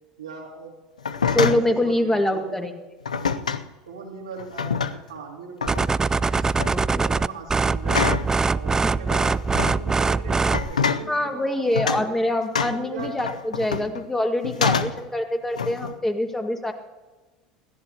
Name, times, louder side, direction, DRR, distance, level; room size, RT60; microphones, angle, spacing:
voice 1, 0.2-0.8 1.5-2.6 3.9-6.4 6.9-8.2 8.5-12.2 12.7-13.2, right 4 dB, 85° right, -1 dB, 2.8 m, -39 dB
sound 1, 1.0-1.7 3.1-3.7 4.4-5.2 5.6-5.9 6.4-6.8 7.9-8.3 9.1-9.8 10.5-11.1 11.7-12.1 12.6-14.0 14.4-15.1 15.6-16.0, left 6 dB, 90° left, 0.5 m, -26 dB
voice 2, 1.3-2.7 6.4-7.2 8.8-9.0 11.1-16.7, left 1 dB, 10° left, 4 dB, 2.0 m, -25 dB
sound 2, 5.7-10.7, right 4 dB, 15° right, 0.4 m, -22 dB
21.5 x 14.5 x 2.9 m, 1.2 s
hypercardioid pair, 80°, 4 cm